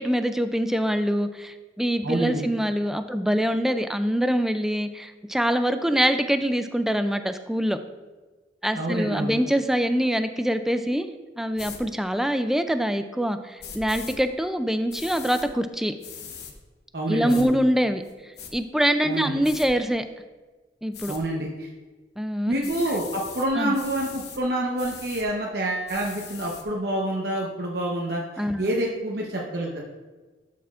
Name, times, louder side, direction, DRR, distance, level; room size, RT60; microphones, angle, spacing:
voice 1, 0.0-7.8 8.6-11.1 11.4-15.9 17.1-18.0 18.5-20.0 20.8-21.2 22.2-22.6 23.5-23.8 28.4-28.7, equal, ahead, 9 dB, 0.3 m, -24 dB
voice 2, 2.0-2.4 8.8-9.3 16.9-17.5 19.0-19.3 21.1-21.7 22.5-29.8, right 1 dB, 65° right, -2 dB, 0.9 m, -27 dB
sound 1, 11.6-11.8 13.6-14.2 14.9-15.5 16.0-16.5 17.3-17.5 18.0-18.5 19.4-19.7 20.9-21.2 22.6-23.5 23.7-24.4 24.8-25.3 25.9-26.6, left 7 dB, 65° left, 1.0 m, -40 dB
11.5 x 5.8 x 2.5 m, 1.3 s
head